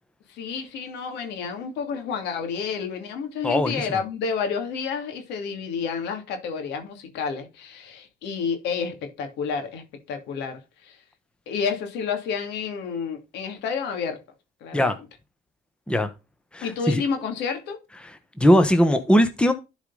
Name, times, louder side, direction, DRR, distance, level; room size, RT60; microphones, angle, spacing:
voice 1, 0.3-11.0 11.5-14.2 14.6-14.9 16.6-17.8, left 6 dB, 85° left, 2.6 m, -30 dB
voice 2, 3.4-4.0 14.7-15.0 15.9-16.1 16.5-17.0 18.4-19.5, equal, 5° left, 1.2 m, -19 dB
12.0 x 5.0 x 4.0 m
cardioid pair, 110°, 17 cm